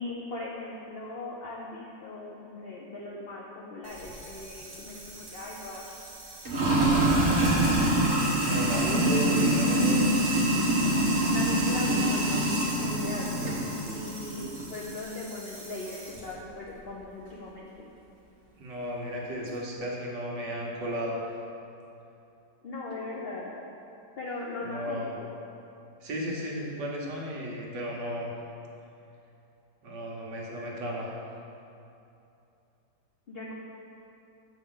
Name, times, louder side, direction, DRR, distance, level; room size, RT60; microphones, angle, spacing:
voice 1, 0.0-5.8 11.3-17.9 22.6-23.5 24.2-25.3 33.3-33.5, left 2 dB, 80° left, -4 dB, 0.5 m, -39 dB
Sink (filling or washing), 3.9-16.2, right 1 dB, 40° right, 1.4 m, -26 dB
voice 2, 8.3-10.0 18.6-21.2 24.6-25.1 26.0-28.3 29.8-31.1, equal, 70° right, -3 dB, 1.7 m, -34 dB
7.8 x 5.9 x 3.8 m, 2.8 s
omnidirectional pair, 2.0 m